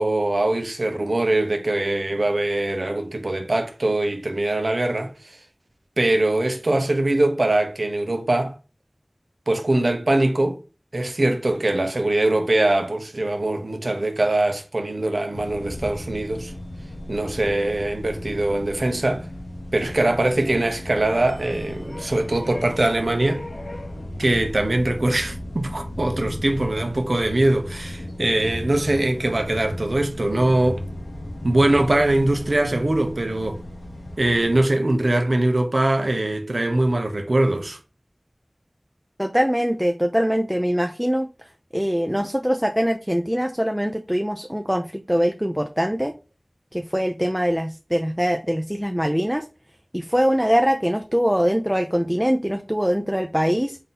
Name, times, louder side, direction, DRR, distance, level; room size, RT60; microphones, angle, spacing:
voice 1, 0.0-5.4 6.0-8.5 9.5-10.6 10.9-16.5 17.1-19.3 19.7-23.4 24.2-30.8 31.4-33.6 34.2-37.8, right 1 dB, 80° right, 0.7 m, -22 dB
sound 1, 15.3-34.6, left 1 dB, 90° left, 0.7 m, -35 dB
voice 2, 39.2-41.3 41.7-46.1 46.7-49.4 49.9-53.8, equal, 5° right, 0.4 m, -22 dB
3.7 x 2.7 x 3.8 m
wide cardioid pair, 40°, 0 cm